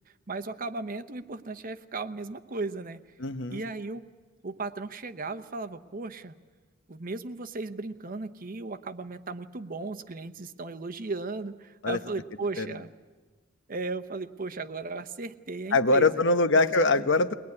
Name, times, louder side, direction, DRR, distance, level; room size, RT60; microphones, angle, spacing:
voice 1, 0.3-3.0 3.5-4.1 4.4-6.3 6.9-12.9 13.7-16.4 16.9-17.0, right 3 dB, 45° right, 11 dB, 0.8 m, -36 dB
voice 2, 3.2-3.6 11.8-12.0 12.6-12.8 15.7-17.3, left 3 dB, 65° left, 10 dB, 0.9 m, -23 dB
22.0 x 20.0 x 9.7 m, 1.4 s
head